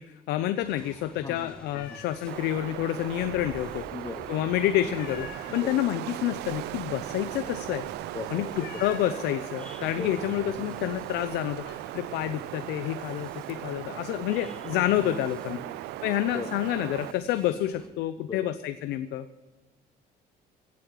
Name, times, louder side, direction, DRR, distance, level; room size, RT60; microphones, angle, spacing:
voice 1, 0.0-3.9 4.3-7.9 8.3-15.6 16.0-19.3, left 12 dB, 85° left, 11 dB, 0.7 m, -29 dB
sound 1, 0.6-17.9, equal, 5° left, 2.1 m, -51 dB
voice 2, 1.2-2.0 3.9-4.4 5.5-5.8 8.1-8.8 9.8-10.2 14.7-15.1 15.5-15.8 16.3-16.5 18.3-18.5, left 4 dB, 25° left, 13 dB, 0.6 m, -40 dB
sound 2, 1.7-2.6 2.9-3.6 4.0-4.4 4.7-9.8 10.1-10.7 11.0-14.1 14.6-15.3, left 7 dB, 70° left, 1.8 m, -48 dB
Wind, 2.3-17.1, right 17 dB, 80° right, 0.4 m, -38 dB
16.0 x 8.5 x 7.6 m, 1.2 s
cardioid pair, 110°, 17 cm